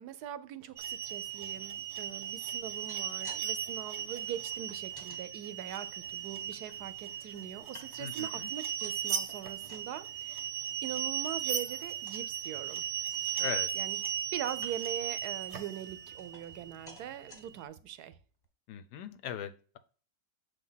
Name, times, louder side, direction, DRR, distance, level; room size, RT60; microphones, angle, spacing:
voice 1, 0.0-10.4 10.8-12.8 13.4-14.0 14.3-18.2, right 10 dB, 80° right, 1.1 m, -42 dB
sound 1, 0.8-17.6, right 10 dB, 55° right, 0.9 m, -37 dB
sound 2, 2.6-3.4 3.7-5.2 5.7-6.7 7.2-8.2 8.5-9.9 10.3-10.5 10.8-10.9 11.3-11.5 11.9-12.3 12.8-12.9 13.1-13.9 14.5-15.0 15.5-16.6 16.9-17.4 18.0-18.1 18.4-18.5, left 2 dB, 15° left, 1.1 m, -54 dB
voice 2, 8.0-8.5 13.4-13.7 18.7-19.8, left 9 dB, 85° left, 1.3 m, -40 dB
6.8 x 3.5 x 5.5 m
omnidirectional pair, 1.7 m